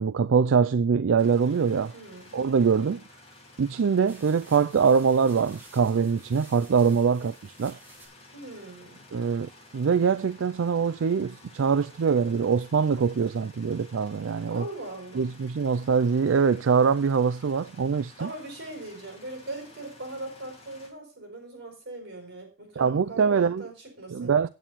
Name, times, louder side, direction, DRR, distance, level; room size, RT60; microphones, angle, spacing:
voice 1, 0.0-1.9 2.3-3.0 3.6-7.8 9.1-14.7 15.1-18.3 22.8-23.7 24.1-24.5, right 6 dB, 80° right, 0.4 m, -23 dB
sound 1, 1.2-20.9, left 2 dB, 30° left, 3.0 m, -53 dB
voice 2, 1.9-2.4 8.3-9.1 14.5-15.3 18.2-24.4, right 2 dB, 55° right, 6.0 m, -40 dB
sound 2, 2.0-2.9 3.6-3.7 4.1-8.1, right 2 dB, 10° right, 3.5 m, -53 dB
9.1 x 9.0 x 4.1 m
head